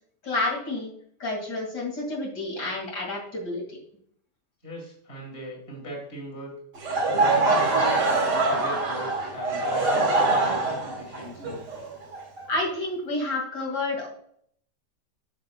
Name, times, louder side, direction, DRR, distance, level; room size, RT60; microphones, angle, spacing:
voice 1, 0.2-0.9 1.2-3.8 12.5-14.1, left 2 dB, 70° left, -2 dB, 2.8 m, -29 dB
voice 2, 4.6-6.6 7.2-11.6, right 1 dB, 35° left, -1 dB, 2.6 m, -38 dB
Laughter / Crowd, 6.8-12.7, right 2 dB, 75° right, 2.7 m, -24 dB
9.4 x 7.2 x 2.2 m, 0.65 s
omnidirectional pair, 1.9 m